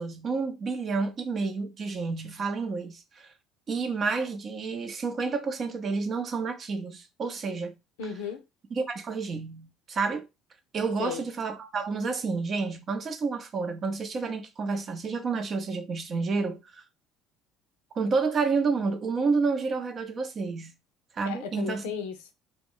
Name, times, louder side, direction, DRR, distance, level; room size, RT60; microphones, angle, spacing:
voice 1, 0.0-3.3 3.7-7.7 8.7-10.3 10.7-16.8 17.9-20.7 21.1-21.8, right 4 dB, 45° right, 0.6 m, -30 dB
voice 2, 8.0-8.4 11.0-11.2 21.3-22.3, left 7 dB, 85° left, 0.5 m, -35 dB
2.3 x 2.1 x 3.6 m
hypercardioid pair, 70°, 0 cm